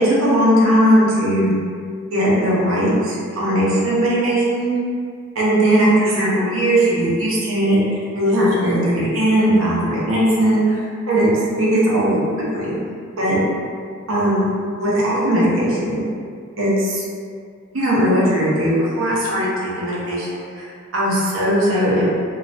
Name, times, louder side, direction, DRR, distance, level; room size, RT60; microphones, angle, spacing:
voice 1, 0.0-1.5 2.1-4.7 5.3-10.8 11.1-11.3 11.6-12.2 12.5-12.7 13.2-13.4 14.1-14.5 14.8-16.0 16.6-17.0 17.7-20.7 20.9-22.1, right 1 dB, 85° right, -7 dB, 0.7 m, -18 dB
2.3 x 2.0 x 2.6 m, 2.1 s
head